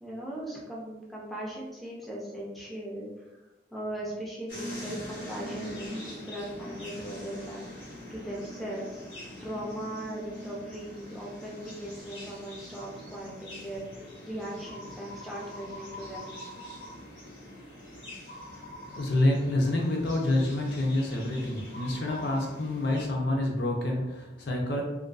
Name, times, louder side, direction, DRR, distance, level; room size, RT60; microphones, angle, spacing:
voice 1, 0.0-3.3 3.7-8.9 9.4-16.3, right 1 dB, ahead, -5 dB, 0.4 m, -39 dB
sound 1, 4.5-23.1, equal, 85° left, 1.1 m, -43 dB
voice 2, 18.4-24.8, left 1 dB, 65° left, 0 dB, 0.5 m, -28 dB
2.4 x 2.2 x 2.3 m, 1.0 s
head